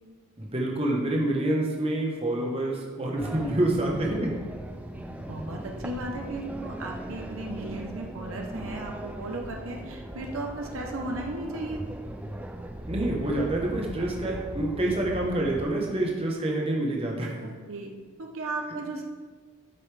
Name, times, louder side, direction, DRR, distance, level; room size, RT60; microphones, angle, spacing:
voice 1, 0.4-4.3 12.9-17.4, right 1 dB, 25° right, -1 dB, 1.1 m, -27 dB
sound 1, 3.2-15.7, right 1 dB, 5° right, 0.3 m, -39 dB
voice 2, 3.3-4.5 4.9-11.8 17.4-17.9 18.2-19.0, right 2 dB, 65° right, 1 dB, 1.0 m, -36 dB
12.5 x 5.4 x 3.4 m, 1.5 s
head